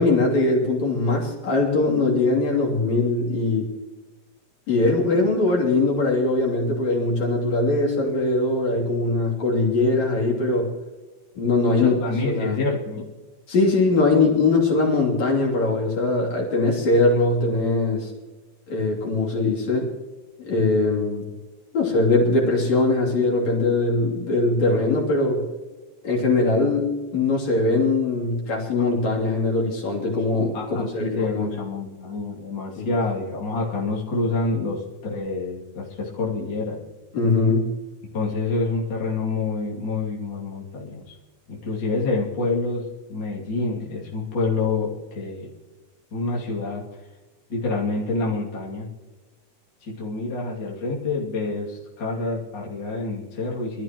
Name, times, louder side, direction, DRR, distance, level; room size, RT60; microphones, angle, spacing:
voice 1, 0.0-3.7 4.7-10.7 11.4-12.0 12.2-12.6 13.5-18.1 18.7-19.9 20.4-21.3 21.7-25.4 26.0-31.6 32.8-32.9 37.1-37.7, left 3 dB, 60° left, -2 dB, 4.3 m, -21 dB
voice 2, 11.7-13.1 30.5-36.8 38.1-41.1 41.5-45.5 46.1-46.8 47.5-48.9 49.8-53.8, left 3 dB, 35° left, -4 dB, 3.2 m, -27 dB
24.5 x 13.5 x 3.1 m, 1.2 s
omnidirectional pair, 3.5 m